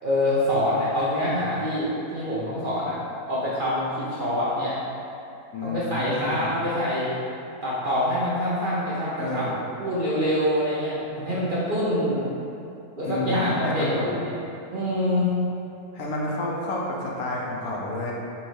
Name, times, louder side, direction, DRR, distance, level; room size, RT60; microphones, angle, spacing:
voice 1, 0.0-3.0 3.3-4.8 5.6-7.1 7.6-9.5 9.8-12.3 13.0-14.3 14.7-15.3, left 1 dB, 55° right, -8 dB, 0.6 m, -25 dB
voice 2, 5.5-6.4 9.2-9.5 13.0-14.1 15.9-18.1, left 2 dB, 85° left, -3 dB, 1.2 m, -30 dB
4.2 x 2.6 x 4.5 m, 2.7 s
omnidirectional pair, 1.5 m